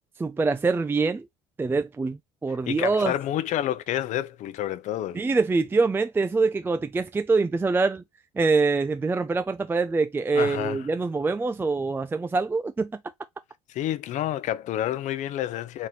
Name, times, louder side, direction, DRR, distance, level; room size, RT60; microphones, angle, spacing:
voice 1, 0.2-1.3 1.6-3.1 5.1-8.0 8.4-12.9, right 4 dB, 15° right, 0.4 m, -24 dB
voice 2, 2.5-5.2 10.3-10.9 13.7-15.9, left 12 dB, 60° left, 0.7 m, -29 dB
4.2 x 3.1 x 4.0 m
supercardioid pair, 75°, 14 cm